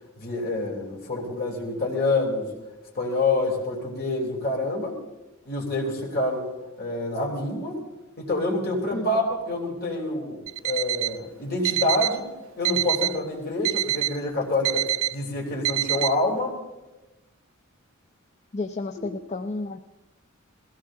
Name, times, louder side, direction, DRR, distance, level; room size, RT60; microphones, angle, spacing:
voice 1, 0.2-2.5 3.0-5.0 5.5-6.5 6.8-7.8 8.2-12.3 12.6-14.8 15.1-16.6 19.0-19.1, left 2 dB, 50° left, -1 dB, 3.6 m, -27 dB
Alarm, 10.5-11.2 11.6-12.2 12.6-13.2 13.6-14.2 14.6-15.1 15.6-16.1, right 15 dB, 75° right, 0.7 m, -26 dB
voice 2, 18.5-19.8, left 3 dB, 35° left, 7 dB, 0.6 m, -32 dB
21.5 x 17.0 x 3.8 m, 1.1 s
head